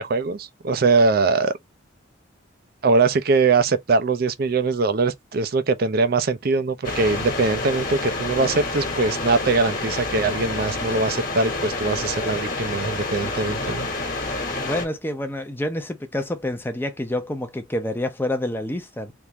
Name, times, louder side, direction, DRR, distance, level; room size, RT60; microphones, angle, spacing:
voice 1, 0.0-1.5 2.8-13.9, right 3 dB, 50° right, 0.5 m, -22 dB
sound 1, 6.8-14.9, left 2 dB, 45° left, 1.3 m, -28 dB
voice 2, 14.6-19.1, left 1 dB, 10° left, 0.5 m, -28 dB
3.5 x 2.6 x 2.8 m
head